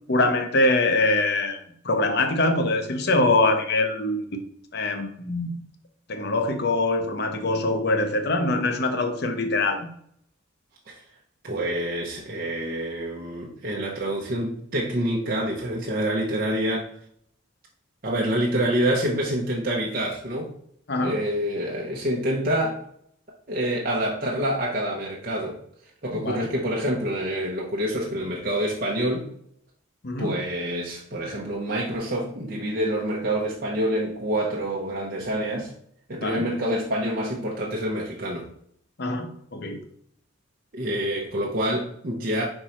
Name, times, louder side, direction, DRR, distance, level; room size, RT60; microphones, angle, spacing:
voice 1, 0.1-1.6 1.8-4.4 4.7-5.5 6.1-9.9 20.9-21.1 26.1-26.5 30.0-30.3 36.2-36.4 39.0-39.8, left 2 dB, 55° left, 6 dB, 0.8 m, -23 dB
voice 2, 11.4-16.9 18.0-20.5 21.0-22.8 23.5-25.6 26.0-29.3 30.2-35.7 36.1-38.5 40.7-42.4, right 1 dB, 45° right, -3 dB, 0.8 m, -27 dB
5.2 x 4.6 x 4.3 m, 0.68 s
head